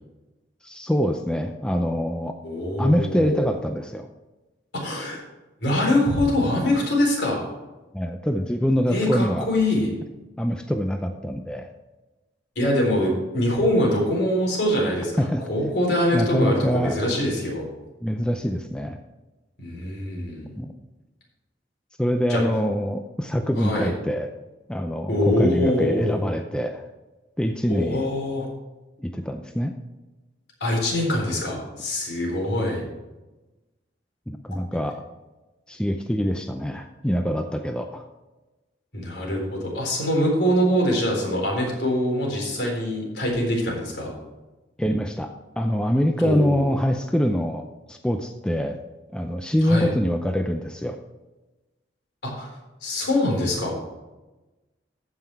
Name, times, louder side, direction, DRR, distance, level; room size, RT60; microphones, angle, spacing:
voice 1, 0.6-2.4 2.8-4.1 7.9-9.5 10.4-11.7 15.2-15.4 16.1-17.0 18.0-19.0 20.6-20.7 22.0-24.3 24.7-26.8 27.4-28.1 29.0-29.7 34.3-35.0 35.7-38.0 44.8-48.8 49.1-51.0, equal, 5° left, 5 dB, 0.5 m, -24 dB
voice 2, 2.4-3.5 4.7-5.2 5.6-7.5 8.9-9.9 12.6-17.6 19.6-20.5 22.3-22.4 23.6-23.9 25.1-26.3 27.7-28.5 30.6-32.8 38.9-44.1 46.2-46.7 49.6-49.9 52.2-52.5 52.8-53.7, left 1 dB, 65° left, -1 dB, 4.0 m, -24 dB
14.5 x 5.8 x 4.6 m, 1.1 s
head